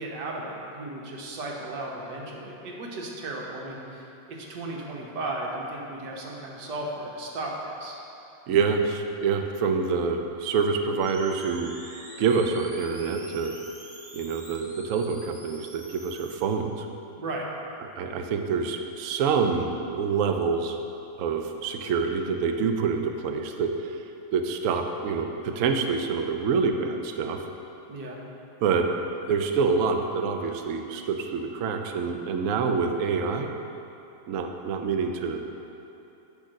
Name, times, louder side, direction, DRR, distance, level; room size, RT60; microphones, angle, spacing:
voice 1, 0.0-8.0 17.2-17.4 27.9-28.2, right 2 dB, 65° right, -1 dB, 1.6 m, -35 dB
voice 2, 8.5-11.7 12.2-13.6 14.1-16.9 18.0-20.8 21.2-24.0 24.3-27.4 28.6-28.9 29.3-33.5 34.3-35.7, right 5 dB, 85° right, 4 dB, 0.7 m, -26 dB
sound 1, 11.0-16.4, right 1 dB, 25° right, 0.6 m, -46 dB
10.0 x 3.7 x 6.4 m, 2.9 s
omnidirectional pair, 2.1 m